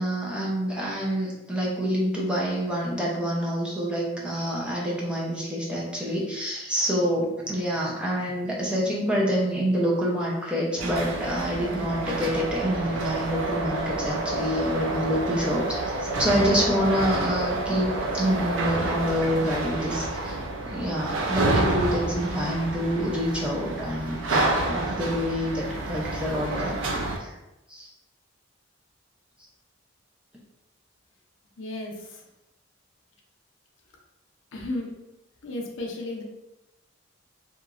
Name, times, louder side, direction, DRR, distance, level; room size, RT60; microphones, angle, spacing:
voice 1, 0.0-17.9 18.1-20.4 20.7-27.3 27.7-27.9, equal, 5° right, -4 dB, 0.6 m, -27 dB
sound 1, 10.8-27.2, right 2 dB, 80° right, 0.4 m, -29 dB
voice 2, 31.6-32.2 34.5-34.9 35.4-36.2, left 2 dB, 85° left, 0 dB, 0.6 m, -33 dB
2.9 x 2.4 x 2.4 m, 0.93 s
head